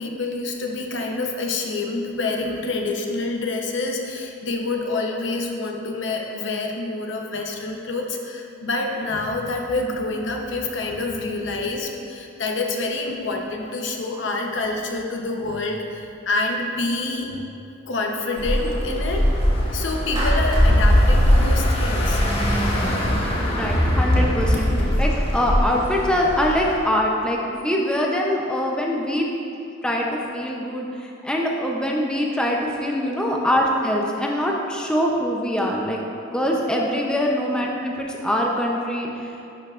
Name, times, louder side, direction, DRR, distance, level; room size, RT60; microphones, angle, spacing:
voice 1, 0.0-17.4 17.9-19.3 19.7-22.2, left 2 dB, 70° left, 2 dB, 0.7 m, -27 dB
sound 1, 18.4-26.8, equal, 30° left, 0.9 m, -20 dB
Clapping, 20.1-22.4, right 1 dB, 25° right, 1.6 m, -32 dB
voice 2, 23.5-29.3 29.8-36.0 36.3-39.5, equal, 5° left, -1 dB, 0.5 m, -23 dB
10.5 x 5.6 x 2.4 m, 2.7 s
head